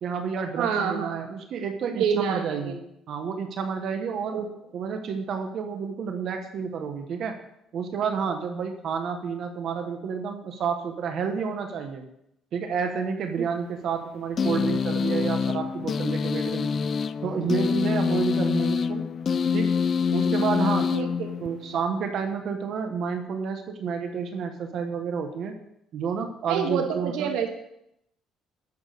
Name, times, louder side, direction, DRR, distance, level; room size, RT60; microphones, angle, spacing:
voice 1, 0.0-2.8 3.1-4.4 4.7-7.4 7.7-12.1 12.5-16.7 17.2-19.0 19.5-19.8 20.1-20.9 21.4-25.5 25.9-27.5, right 6 dB, 55° right, 5 dB, 1.1 m, -30 dB
voice 2, 0.6-1.2 1.9-2.7 4.3-4.5 17.8-18.1 20.9-21.3 26.5-27.5, right 7 dB, 85° right, 3 dB, 1.8 m, -28 dB
sound 1, 14.4-21.8, left 6 dB, 40° left, 0.4 m, -26 dB
11.0 x 7.1 x 6.6 m, 0.81 s
cardioid pair, 130°, 0 cm